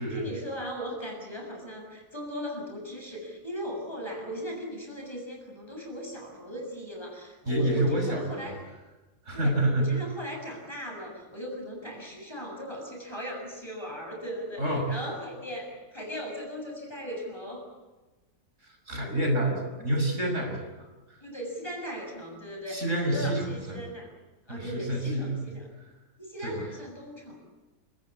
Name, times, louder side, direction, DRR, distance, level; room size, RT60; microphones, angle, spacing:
voice 1, 0.0-8.6 9.3-17.7 21.2-24.1 24.5-25.7 26.2-27.4, equal, 15° left, 0 dB, 7.3 m, -38 dB
voice 2, 7.5-8.5 9.3-10.0 14.6-15.0 18.6-20.9 22.7-23.8 24.5-25.4 26.4-26.6, right 1 dB, 50° right, 2 dB, 6.3 m, -28 dB
28.0 x 18.5 x 8.7 m, 1.2 s
omnidirectional pair, 1.6 m